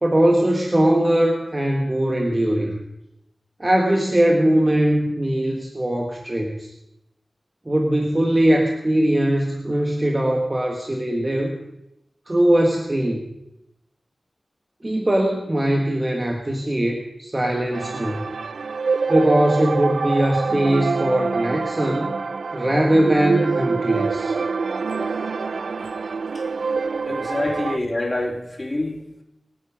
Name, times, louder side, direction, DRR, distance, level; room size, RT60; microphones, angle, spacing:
voice 1, 0.0-2.8 3.6-6.7 7.7-11.6 12.3-13.2 14.8-18.3 19.1-22.1 22.5-24.3, right 1 dB, 30° right, 1 dB, 1.8 m, -20 dB
sound 1, 17.7-27.8, right 4 dB, 90° right, 0.4 m, -25 dB
voice 2, 27.0-29.2, left 1 dB, 30° left, 1 dB, 3.3 m, -26 dB
23.5 x 8.7 x 5.2 m, 0.89 s
wide cardioid pair, 65°, 0 cm